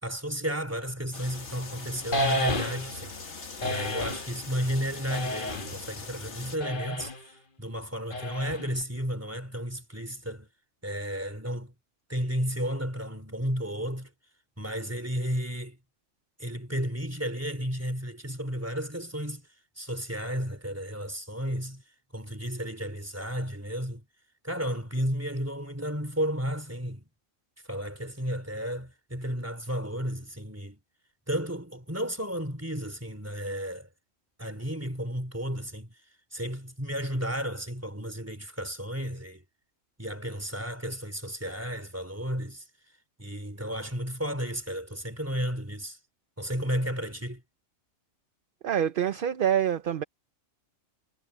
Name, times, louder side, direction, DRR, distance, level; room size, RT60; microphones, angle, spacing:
voice 1, 0.0-3.1 3.6-10.5 10.8-11.7 12.1-14.1 14.6-15.8 16.4-19.5 19.8-21.8 22.1-24.0 24.4-27.1 27.7-30.8 31.3-33.9 34.4-35.9 36.3-39.4 40.0-42.6 43.2-46.0 46.4-47.4, equal, 10° right, 3.2 m, -33 dB
sound 1, 1.1-6.6, left 4 dB, 60° left, 2.1 m, -42 dB
sound 2, 2.1-3.0 3.6-4.3 5.1-5.8 6.6-7.2 8.1-8.8, left 1 dB, 40° left, 1.6 m, -31 dB
voice 2, 48.6-50.0, right 9 dB, 50° right, 0.7 m, -26 dB
omnidirectional pair, 1.4 m